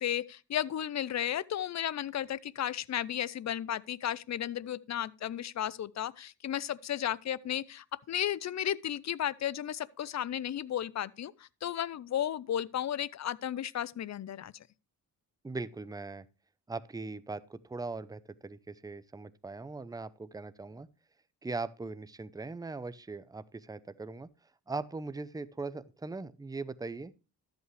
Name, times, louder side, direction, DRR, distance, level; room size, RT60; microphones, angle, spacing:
voice 1, 0.0-14.6, left 10 dB, 45° left, 0.6 m, -34 dB
voice 2, 15.4-16.3 16.7-20.9 21.4-24.3 24.7-27.1, right 3 dB, 10° right, 0.6 m, -40 dB
12.5 x 8.3 x 3.2 m
cardioid pair, 75°, 41 cm